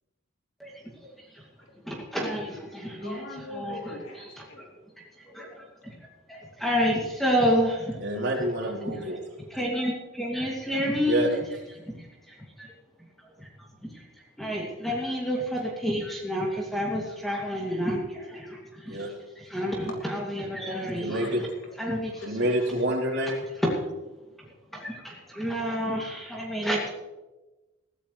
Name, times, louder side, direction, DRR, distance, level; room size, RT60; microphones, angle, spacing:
voice 1, 1.8-3.2 3.5-4.0 4.3-4.7 5.3-8.0 8.9-9.1 9.5-11.3 11.7-12.7 13.4-13.5 13.8-21.5 21.8-22.4 22.8-22.9 23.6-23.7 24.7-26.9, equal, ahead, -3 dB, 2.5 m, -30 dB
voice 2, 3.0-4.7 21.6-21.7 22.1-22.7 26.0-26.1, left 1 dB, 70° left, -1 dB, 3.4 m, -42 dB
voice 3, 8.0-9.2 11.1-11.3 18.8-19.1 20.8-21.4 22.2-23.4, right 1 dB, 60° right, 0 dB, 3.6 m, -27 dB
21.5 x 15.0 x 3.3 m, 1.1 s
head